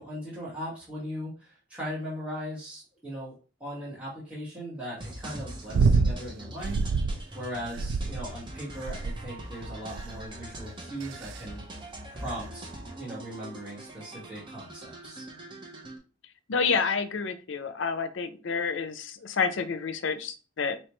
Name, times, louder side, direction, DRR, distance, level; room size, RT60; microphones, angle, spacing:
voice 1, 0.0-3.4 3.6-6.8 7.3-11.6 12.1-12.7 13.0-15.3, equal, 5° right, -8 dB, 1.6 m, -38 dB
sound 1, 5.0-16.0, right 1 dB, 25° right, 0.8 m, -43 dB
sound 2, 5.7-6.2 6.6-7.2 7.7-8.4 8.9-9.3 10.0-10.3 11.0-11.4 12.3-12.4, right 4 dB, 65° right, 0.3 m, -26 dB
voice 2, 16.5-20.8, left 5 dB, 70° left, 10 dB, 0.5 m, -29 dB
4.4 x 3.2 x 3.0 m, 0.35 s
head